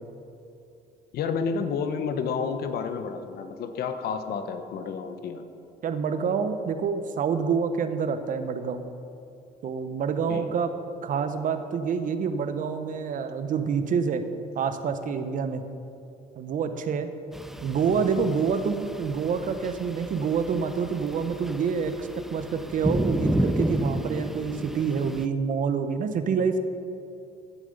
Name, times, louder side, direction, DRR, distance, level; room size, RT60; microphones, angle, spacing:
voice 1, 1.1-5.4 10.3-10.5, left 5 dB, 65° left, 8 dB, 1.0 m, -30 dB
voice 2, 5.8-8.8 9.6-10.7 11.0-14.2 14.6-15.6 16.4-17.1 17.6-26.6, right 6 dB, 50° right, 9 dB, 0.9 m, -27 dB
sound 1, 17.3-25.3, equal, ahead, 0.4 m, -32 dB
15.5 x 7.2 x 5.3 m, 2.6 s
cardioid pair, 110°, 17 cm